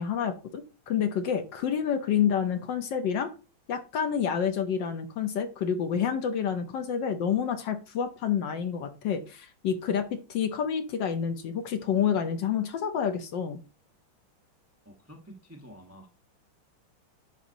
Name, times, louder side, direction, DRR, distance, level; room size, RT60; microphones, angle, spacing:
voice 1, 0.0-3.3 3.7-13.6, left 8 dB, 65° left, 1.3 m, -28 dB
voice 2, 14.8-16.1, equal, 15° right, 0.5 m, -49 dB
10.0 x 4.1 x 2.6 m
omnidirectional pair, 2.3 m